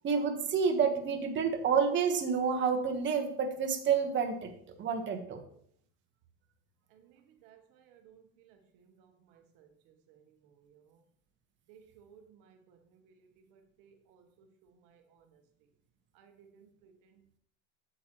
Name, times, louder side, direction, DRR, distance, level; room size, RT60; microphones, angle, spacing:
voice 1, 0.0-4.5 4.8-5.4, right 6 dB, 30° right, 4 dB, 1.2 m, -29 dB
voice 2, 7.4-8.6 8.9-9.7 10.1-10.2 10.7-10.8 11.7-12.8 13.0-14.5 14.8-15.4 16.1-17.2, right 7 dB, 60° right, 5 dB, 1.0 m, -61 dB
8.2 x 7.5 x 3.0 m, 0.65 s
supercardioid pair, 120°, 36 cm